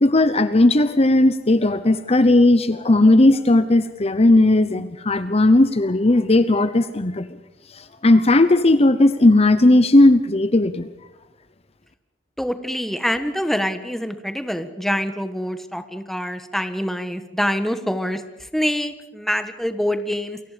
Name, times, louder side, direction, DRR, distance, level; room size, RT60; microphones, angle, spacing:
voice 1, 0.0-7.2 7.7-10.9, left 2 dB, 35° left, 12 dB, 0.9 m, -16 dB
voice 2, 12.4-20.4, equal, ahead, 9 dB, 1.5 m, -25 dB
29.0 x 23.0 x 5.2 m, 1.0 s
head